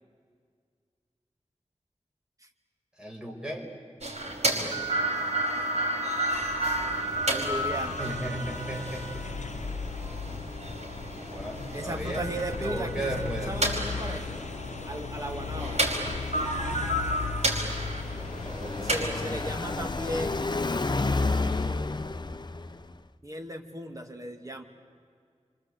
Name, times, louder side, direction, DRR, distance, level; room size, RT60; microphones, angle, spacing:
voice 1, 3.0-3.8 8.0-9.3 11.3-12.3 12.6-13.5 18.4-19.4, right 1 dB, 5° right, 0 dB, 5.4 m, -36 dB
sound 1, 4.0-19.1, right 1 dB, 65° right, 4.9 m, -31 dB
sound 2, 6.3-21.7, left 5 dB, 85° left, 0.9 m, -38 dB
voice 2, 7.3-8.0 11.7-14.4 14.8-15.9 18.8-20.6 21.2-22.1 23.2-24.6, right 1 dB, 30° right, 4 dB, 2.4 m, -36 dB
Car passing by, 17.5-22.9, left 3 dB, 40° left, 0.7 m, -30 dB
28.0 x 25.5 x 8.1 m, 2.1 s
wide cardioid pair, 65°, 12 cm